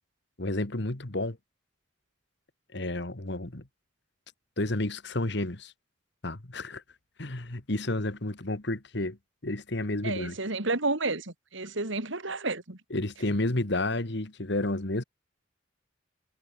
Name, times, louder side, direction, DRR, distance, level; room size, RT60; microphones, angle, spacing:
voice 1, 0.4-1.4 2.7-3.6 4.6-5.7 6.2-6.8 7.2-9.2 9.4-10.4 12.9-15.0, left 2 dB, 55° left, 1.7 m, -31 dB
voice 2, 10.0-12.8, right 3 dB, 70° right, 2.7 m, -31 dB
head